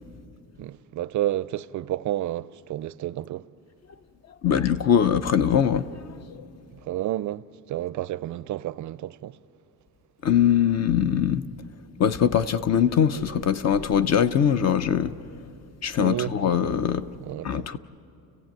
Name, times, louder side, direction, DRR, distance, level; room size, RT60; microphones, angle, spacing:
voice 1, 0.6-3.5 6.7-9.4 16.0-16.4 17.2-17.7, right 13 dB, 50° right, 0.5 m, -30 dB
voice 2, 4.4-6.2 10.2-11.4 12.0-15.2 15.8-17.1 17.4-17.8, left 8 dB, 45° left, 0.6 m, -22 dB
30.0 x 15.5 x 9.0 m
cardioid pair, 175°, 37 cm